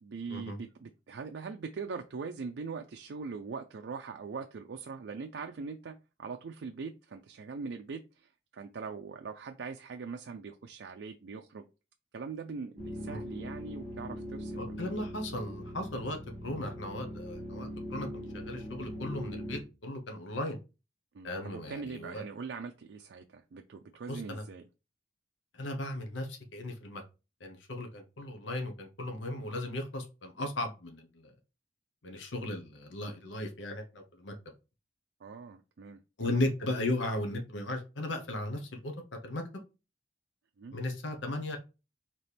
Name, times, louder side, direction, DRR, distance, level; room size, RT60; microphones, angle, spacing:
voice 1, 0.0-11.6 12.1-14.8 21.1-24.6 35.2-36.5 40.6-40.8, right 5 dB, 70° right, 0.4 m, -42 dB
sound 1, 12.8-19.6, equal, 15° left, 1.8 m, -41 dB
voice 2, 14.6-20.6 21.2-22.2 24.1-24.4 25.5-27.0 27.4-31.3 32.0-34.3 36.2-38.9 39.2-39.4 40.7-41.6, left 1 dB, 85° left, 0.9 m, -36 dB
4.2 x 2.9 x 3.3 m
head